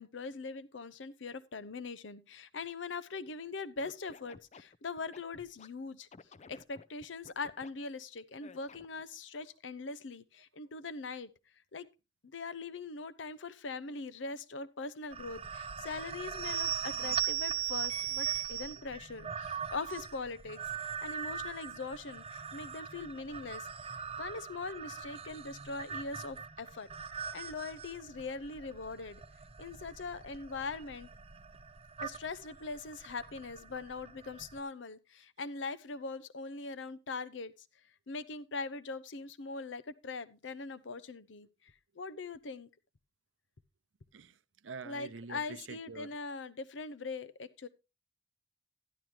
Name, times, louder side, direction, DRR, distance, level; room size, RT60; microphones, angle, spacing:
voice 1, 0.0-6.1 6.5-11.3 11.7-11.9 12.3-20.6 21.0-23.7 24.2-26.9 27.3-29.2 29.6-31.1 32.0-37.5 38.1-42.7 44.8-47.7, left 4 dB, 75° left, 0.7 m, -41 dB
Scratching (performance technique), 3.8-5.7 6.1-7.7 8.4-9.0, left 4 dB, 35° left, 0.5 m, -54 dB
sound 1, 15.1-34.6, right 9 dB, 30° right, 0.5 m, -40 dB
voice 2, 44.1-46.2, right 4 dB, 90° right, 0.6 m, -46 dB
12.0 x 11.0 x 2.9 m
head